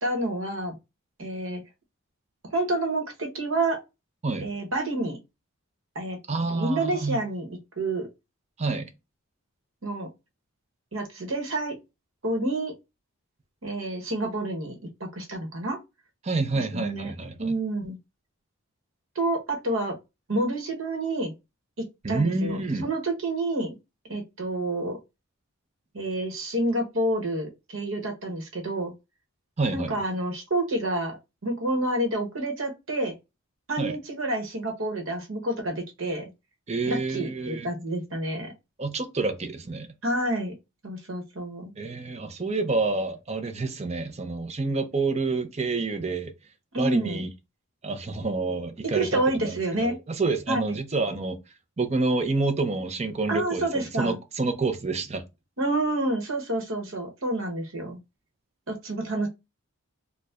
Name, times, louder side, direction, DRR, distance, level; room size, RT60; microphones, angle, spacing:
voice 1, 0.0-0.7 1.2-1.6 2.5-3.8 4.4-5.2 5.9-6.2 6.5-8.1 9.8-10.1 10.9-11.8 12.2-12.7 13.6-15.8 16.5-17.1 17.4-18.0 19.1-20.0 20.3-21.3 21.8-23.8 24.1-25.0 25.9-28.9 29.7-31.2 31.4-33.1 33.7-36.3 36.9-38.5 40.0-40.6 40.8-41.7 46.7-47.3 48.9-50.0 50.5-50.6 53.3-54.2 55.6-58.0 58.7-59.3, right 1 dB, 65° right, 1.1 m, -28 dB
voice 2, 6.3-7.2 8.6-8.9 16.2-17.5 22.0-22.8 29.6-30.0 33.8-34.0 36.7-37.7 38.8-39.9 41.8-46.3 46.8-47.3 47.8-51.4 51.8-55.2, right 3 dB, 30° right, 0.5 m, -28 dB
4.4 x 2.2 x 2.4 m
head